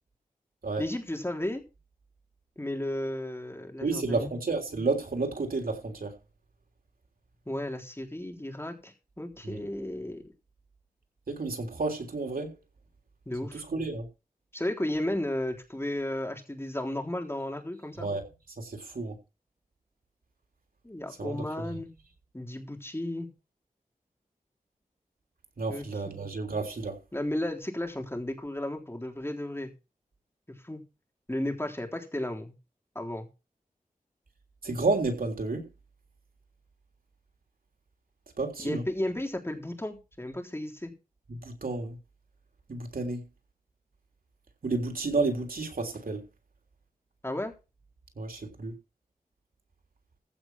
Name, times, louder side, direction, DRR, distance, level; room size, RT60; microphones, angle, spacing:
voice 1, 0.8-1.6 2.6-4.4 7.5-10.2 13.3-13.6 14.5-18.1 20.8-21.9 22.3-23.3 25.7-25.9 27.1-29.7 30.6-30.8 31.3-32.5 33.0-33.3 38.6-40.9 47.2-47.5, left 1 dB, 15° left, 3.6 m, -34 dB
voice 2, 3.8-6.1 9.4-9.6 11.3-12.5 13.5-14.1 18.0-18.2 18.6-19.2 21.2-21.4 25.6-27.0 34.6-35.6 38.4-38.8 41.3-42.0 42.7-43.2 44.6-46.2 48.2-48.8, right 3 dB, 80° right, 3.4 m, -31 dB
15.0 x 5.9 x 6.1 m
wide cardioid pair, 75°, 15 cm